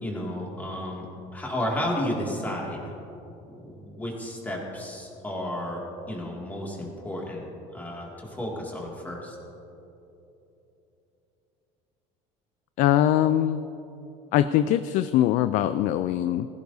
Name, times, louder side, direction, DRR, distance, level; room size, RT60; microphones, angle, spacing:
voice 1, 0.0-2.9 3.5-5.8 6.1-7.5 7.7-9.4, left 1 dB, 10° left, -3 dB, 2.3 m, -32 dB
voice 2, 12.8-13.6 14.3-16.5, left 12 dB, 60° left, 11 dB, 0.4 m, -22 dB
17.0 x 15.5 x 2.7 m, 2.9 s
cardioid pair, 140°, 15 cm